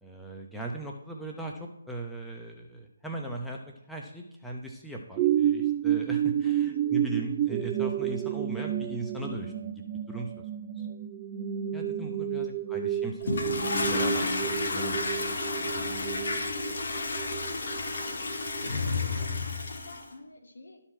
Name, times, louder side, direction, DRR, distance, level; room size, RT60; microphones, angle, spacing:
voice 1, 0.0-3.6 3.9-10.4 10.8-10.9 11.7-13.4 13.9-15.4, right 2 dB, ahead, -1 dB, 0.7 m, -39 dB
sound 1, 5.2-18.7 19.2-19.3, right 10 dB, 25° right, 0.3 m, -31 dB
Toilet flush, 13.2-20.0, left 3 dB, 55° left, 1.5 m, -31 dB
voice 2, 17.6-18.1 18.7-20.8, left 2 dB, 70° left, 3 dB, 1.8 m, -48 dB
12.0 x 4.4 x 4.4 m, 0.81 s
figure-of-eight pair, 150°, 0 cm